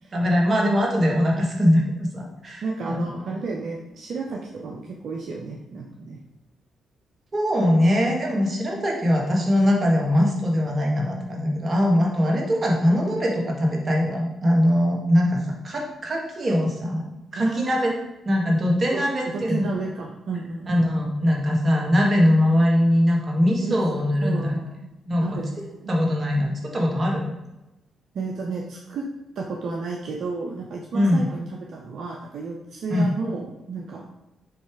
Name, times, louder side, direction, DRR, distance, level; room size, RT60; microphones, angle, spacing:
voice 1, 0.1-3.1 7.3-17.1 17.3-17.9 18.3-19.8 20.7-24.6 25.1-25.4 25.9-27.3 30.9-31.3 32.9-33.1, equal, 40° right, -1 dB, 1.8 m, -21 dB
voice 2, 2.6-6.2 17.4-17.7 18.9-19.0 19.3-20.7 23.6-23.8 24.2-26.0 28.1-29.0 29.4-34.0, right 4 dB, 70° right, 0 dB, 0.7 m, -32 dB
6.9 x 3.2 x 4.7 m, 0.95 s
supercardioid pair, 55°, 0 cm